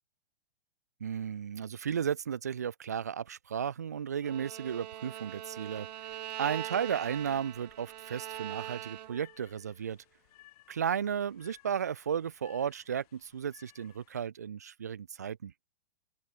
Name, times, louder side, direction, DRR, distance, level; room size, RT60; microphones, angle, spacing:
voice 1, 1.0-5.9 6.4-10.0 10.7-15.5, right 8 dB, 20° right, 0.3 m, -34 dB
Bowed string instrument, 4.2-9.4, right 12 dB, 45° right, 0.7 m, -42 dB
sound 1, 4.7-14.3, left 17 dB, 40° left, 7.5 m, -63 dB
open air
hypercardioid pair, 175°, 30 cm